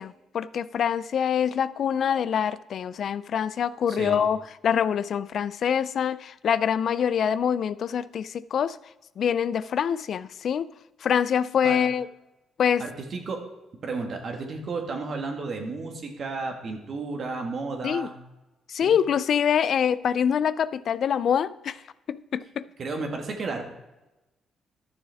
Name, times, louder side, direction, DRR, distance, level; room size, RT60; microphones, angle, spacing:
voice 1, 0.0-4.4 4.6-8.8 9.2-10.7 11.0-12.1 12.6-12.8 17.8-18.1 18.7-21.8 22.1-22.7, left 8 dB, 60° left, 16 dB, 0.3 m, -25 dB
voice 2, 3.9-4.2 11.6-11.8 12.8-13.5 13.8-18.2 18.8-19.0 22.8-23.6, right 3 dB, 50° right, 4 dB, 1.8 m, -33 dB
12.0 x 7.0 x 3.5 m, 1.0 s
cardioid pair, 90°, 0 cm